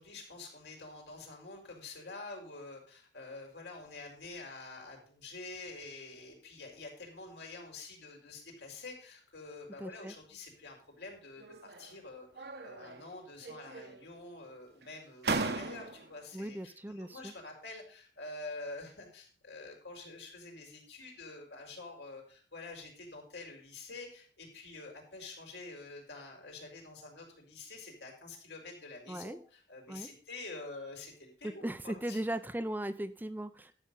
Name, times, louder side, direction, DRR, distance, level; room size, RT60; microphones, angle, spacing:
voice 1, 0.0-32.2, left 3 dB, 85° left, 1 dB, 4.4 m, -47 dB
voice 2, 9.8-10.1 16.3-17.3 29.1-29.4 29.9-30.1 31.6-33.7, right 1 dB, 10° right, 11 dB, 0.5 m, -38 dB
sound 1, 11.4-12.0 12.4-13.1 13.4-14.2 14.8-14.9 15.2-16.2, right 3 dB, 70° right, 1.2 m, -37 dB
12.5 x 7.1 x 5.4 m, 0.43 s
head